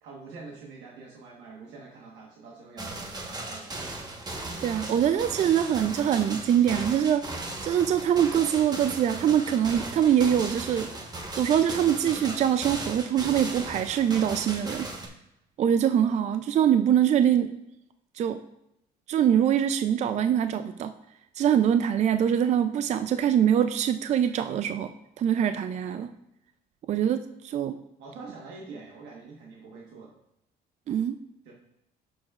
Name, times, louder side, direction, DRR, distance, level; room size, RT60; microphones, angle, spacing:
voice 1, 0.0-4.0 28.0-30.1 31.4-31.5, right 4 dB, 90° right, -3 dB, 1.3 m, -45 dB
sound 1, 2.8-15.1, right 2 dB, 25° right, 1.1 m, -37 dB
voice 2, 4.6-7.3 7.6-10.9 11.4-14.9 15.6-17.5 18.2-18.4 19.1-20.9 21.4-24.9 25.2-26.1 26.9-27.8 30.9-31.2, right 9 dB, 45° right, 10 dB, 0.4 m, -23 dB
11.5 x 6.2 x 2.4 m, 0.83 s
cardioid pair, 110°, 17 cm